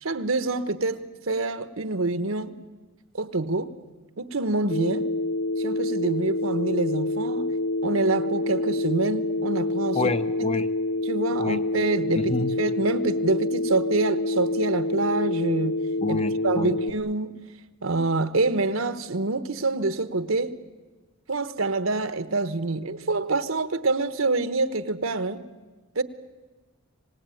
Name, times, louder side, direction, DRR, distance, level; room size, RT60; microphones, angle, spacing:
voice 1, 0.0-2.5 3.1-3.7 4.2-5.1 5.6-7.5 7.8-10.0 11.1-15.8 16.1-16.2 16.4-17.3 17.8-20.5 21.3-25.5 25.9-26.0, right 3 dB, 70° right, 1.1 m, -26 dB
Telephone, 4.7-16.9, left 2 dB, 75° left, 0.9 m, -27 dB
voice 2, 9.9-10.7 11.4-11.6 12.1-12.5 16.0-16.8, left 3 dB, 30° left, 0.8 m, -28 dB
26.0 x 18.5 x 9.1 m
head